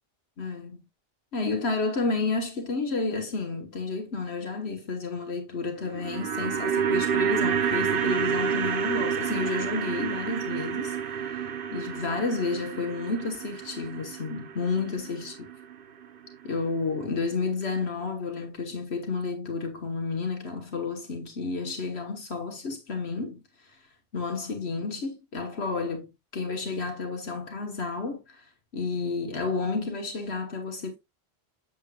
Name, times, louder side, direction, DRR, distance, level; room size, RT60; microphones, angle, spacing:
voice 1, 0.4-0.8 1.3-15.5 16.4-23.8 24.1-31.0, left 4 dB, 75° left, 1.5 m, -31 dB
sound 1, 5.8-16.1 16.3-16.4, right 7 dB, 60° right, 0.9 m, -29 dB
7.5 x 7.2 x 2.3 m
omnidirectional pair, 1.1 m